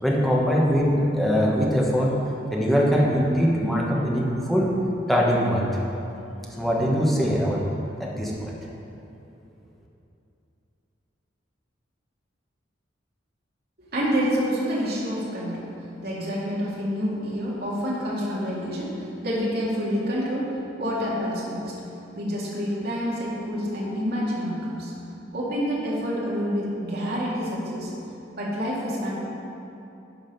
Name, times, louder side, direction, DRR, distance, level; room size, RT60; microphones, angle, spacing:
voice 1, 0.0-2.2 2.5-4.8 5.1-5.7 6.5-7.6 8.0-8.6, equal, ahead, -4 dB, 1.2 m, -22 dB
voice 2, 13.9-15.6 16.0-18.9 19.2-20.5 20.8-21.6 22.1-24.9 25.3-27.9 28.3-29.1, equal, 55° right, -6 dB, 2.1 m, -27 dB
10.5 x 5.1 x 5.3 m, 2.8 s
head